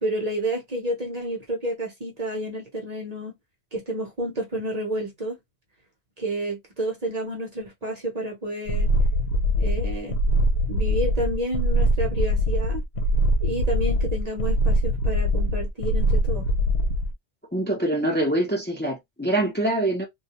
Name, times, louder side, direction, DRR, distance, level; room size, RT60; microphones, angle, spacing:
voice 1, 0.0-3.4 3.7-5.4 6.2-8.9 9.6-10.2 10.7-12.8 13.4-16.5, right 1 dB, 40° right, 0.8 m, -30 dB
sound 1, 8.7-17.1, equal, 85° left, 0.9 m, -22 dB
voice 2, 17.5-20.1, right 1 dB, 10° left, 0.6 m, -24 dB
2.3 x 2.1 x 2.9 m
omnidirectional pair, 1.1 m